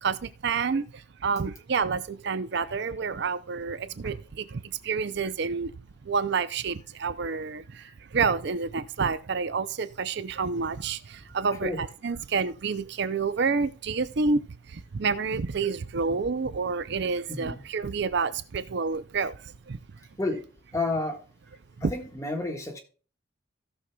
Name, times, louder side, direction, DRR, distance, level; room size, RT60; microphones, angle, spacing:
voice 1, 0.0-5.7 6.0-19.8, right 5 dB, 55° right, 0.5 m, -29 dB
voice 2, 17.3-17.6 20.2-20.4 20.7-21.2 21.8-22.8, left 2 dB, 15° left, 1.5 m, -30 dB
17.0 x 6.4 x 2.3 m
head